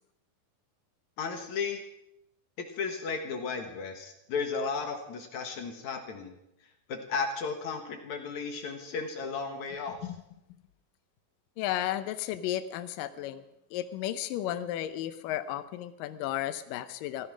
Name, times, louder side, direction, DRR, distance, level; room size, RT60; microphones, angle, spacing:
voice 1, 1.2-1.8 2.6-6.4 6.9-10.1, left 5 dB, 60° left, 4 dB, 2.5 m, -34 dB
voice 2, 11.6-13.4 13.7-17.3, left 12 dB, 75° left, 11 dB, 2.3 m, -33 dB
16.0 x 13.5 x 6.1 m, 0.86 s
omnidirectional pair, 4.1 m